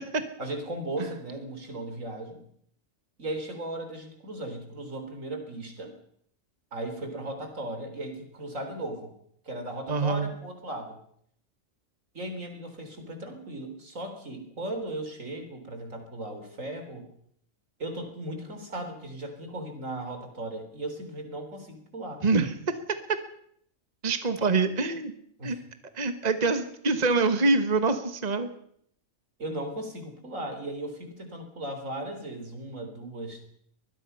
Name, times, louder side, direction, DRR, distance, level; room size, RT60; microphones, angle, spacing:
voice 1, 0.4-2.4 3.2-6.0 6.7-9.1 9.4-11.0 12.1-17.1 17.8-22.2 25.4-25.6 29.4-33.5, right 1 dB, 75° right, 6 dB, 4.2 m, -37 dB
voice 2, 9.9-10.3 22.2-22.5 24.0-25.1 25.4-25.6 25.9-28.5, right 3 dB, 30° right, 9 dB, 1.5 m, -25 dB
23.5 x 20.5 x 5.7 m, 0.67 s
omnidirectional pair, 1.4 m